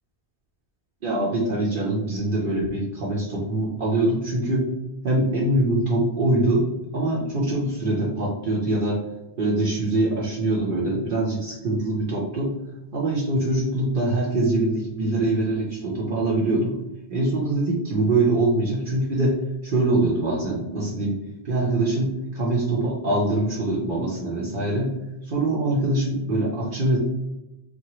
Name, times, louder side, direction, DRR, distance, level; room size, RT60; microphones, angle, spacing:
voice 1, 1.0-4.7 5.0-6.7 6.9-9.0 9.4-12.5 12.9-16.8 17.1-19.4 19.6-21.1 21.4-24.9 25.2-27.0, right 2 dB, 60° right, -4 dB, 0.7 m, -23 dB
2.8 x 2.2 x 2.9 m, 0.96 s
omnidirectional pair, 1.1 m